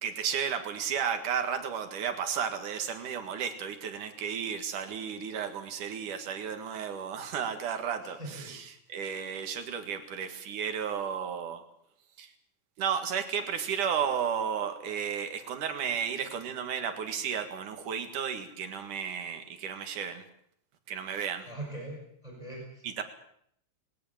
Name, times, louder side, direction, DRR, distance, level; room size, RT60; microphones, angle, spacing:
voice 1, 0.0-11.6 12.2-12.3 12.8-20.2 20.9-21.5 22.8-23.0, right 7 dB, 75° right, 7 dB, 3.3 m, -33 dB
voice 2, 8.0-8.6 21.5-23.0, right 1 dB, 10° right, 0 dB, 6.3 m, -42 dB
20.5 x 18.5 x 7.3 m, 0.69 s
omnidirectional pair, 3.6 m